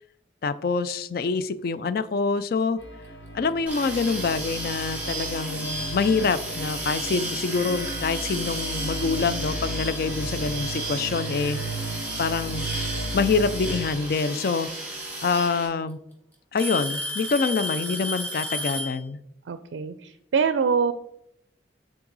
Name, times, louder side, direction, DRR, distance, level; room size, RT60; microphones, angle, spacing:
voice 1, 0.4-2.8 3.3-11.6 12.2-12.7 13.1-14.7 15.2-16.0 16.5-19.2, left 4 dB, 50° left, 14 dB, 0.3 m, -26 dB
sound 1, 2.8-13.8, right 1 dB, 75° left, 1.1 m, -35 dB
sound 2, 3.7-15.7, right 2 dB, 10° right, 1.9 m, -34 dB
Alarm / Tick-tock, 15.0-15.1 15.5-15.9 16.6-19.0, left 1 dB, 10° left, 1.3 m, -31 dB
voice 2, 19.5-20.9, right 6 dB, 80° right, 11 dB, 0.4 m, -24 dB
8.6 x 3.8 x 3.9 m, 0.78 s
head